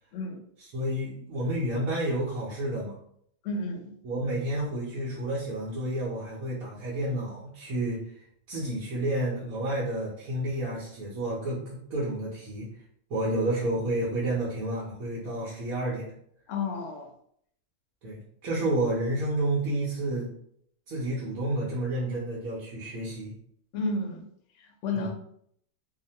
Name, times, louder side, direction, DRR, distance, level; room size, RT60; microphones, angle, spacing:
voice 1, 0.7-3.0 4.0-12.7 13.1-16.1 18.0-20.3 20.9-23.3 24.9-25.1, right 1 dB, 75° right, -6 dB, 1.2 m, -30 dB
voice 2, 3.4-3.9 16.5-17.1 23.7-24.3 24.6-25.1, left 3 dB, 65° left, 3 dB, 0.8 m, -32 dB
2.8 x 2.1 x 2.7 m, 0.67 s
omnidirectional pair, 1.5 m